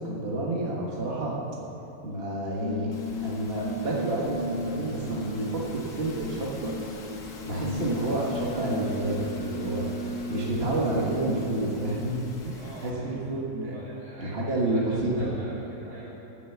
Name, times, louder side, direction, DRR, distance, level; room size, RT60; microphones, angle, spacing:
voice 1, 0.0-1.4 2.0-2.9 3.2-6.7 7.4-9.9 10.3-12.2 12.4-13.8 14.2-15.3, right 2 dB, 40° right, -4 dB, 1.9 m, -29 dB
sound 1, 2.4-12.8, left 1 dB, 25° left, 1.1 m, -36 dB
sound 2, 2.9-12.9, left 3 dB, 80° left, 1.7 m, -46 dB
voice 2, 12.6-16.3, right 1 dB, 85° right, -5 dB, 4.1 m, -46 dB
13.0 x 7.0 x 8.2 m, 2.8 s
omnidirectional pair, 1.6 m